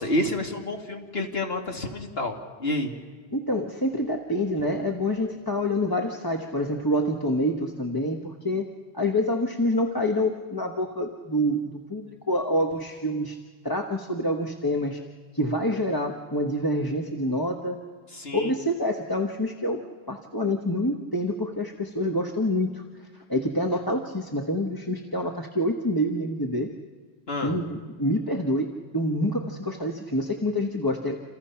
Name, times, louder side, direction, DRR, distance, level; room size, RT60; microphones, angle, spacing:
voice 1, 0.0-2.9 18.1-18.5 27.3-27.6, left 1 dB, 65° left, 2 dB, 2.6 m, -29 dB
voice 2, 3.3-13.4 13.6-15.0 15.3-17.8 18.3-22.8 23.3-26.7 27.4-31.2, left 1 dB, 20° left, 1 dB, 1.3 m, -27 dB
29.0 x 27.5 x 5.8 m, 1.5 s
omnidirectional pair, 1.1 m